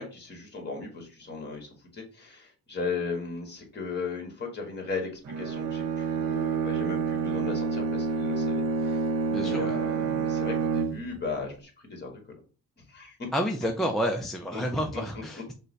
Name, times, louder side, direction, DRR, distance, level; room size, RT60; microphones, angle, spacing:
voice 1, 0.0-12.2 12.8-13.3 14.5-14.6 14.9-15.0, left 4 dB, 35° left, 2 dB, 1.6 m, -36 dB
Bowed string instrument, 5.2-11.2, right 5 dB, 55° right, 0.7 m, -28 dB
voice 2, 9.3-9.7 13.3-15.5, equal, ahead, 1 dB, 0.4 m, -29 dB
5.4 x 2.2 x 3.9 m, 0.36 s
cardioid pair, 140°, 30 cm